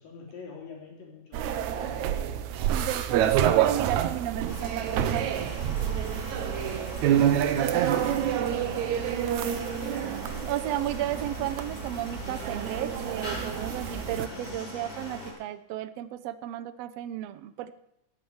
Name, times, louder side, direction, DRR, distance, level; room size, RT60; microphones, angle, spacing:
voice 1, 0.0-2.2 6.3-10.2, left 5 dB, 75° left, -1 dB, 5.2 m, -47 dB
sound 1, 1.3-14.3, right 10 dB, 75° right, 1.9 m, -28 dB
voice 2, 2.7-5.5 8.0-8.6 10.4-17.8, right 13 dB, 90° right, 12 dB, 1.4 m, -33 dB
sound 2, 4.5-15.3, left 1 dB, 25° left, 5.2 m, -41 dB
sound 3, 4.8-14.6, right 1 dB, 50° right, 0.9 m, -49 dB
13.5 x 8.8 x 7.9 m, 0.80 s
omnidirectional pair, 3.9 m